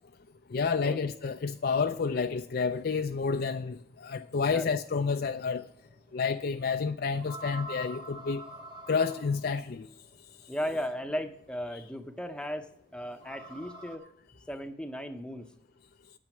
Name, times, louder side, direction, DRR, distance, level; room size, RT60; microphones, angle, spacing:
voice 1, 0.5-5.6 6.1-8.4 8.9-9.9 11.7-11.8, left 5 dB, 50° left, 0.4 m, -30 dB
sound 1, 5.4-5.5 7.2-9.6 11.4-11.5 13.1-14.0, right 1 dB, 25° right, 1.5 m, -44 dB
voice 2, 10.5-14.0 14.5-15.5, equal, 5° left, 0.7 m, -36 dB
8.9 x 8.7 x 5.9 m
head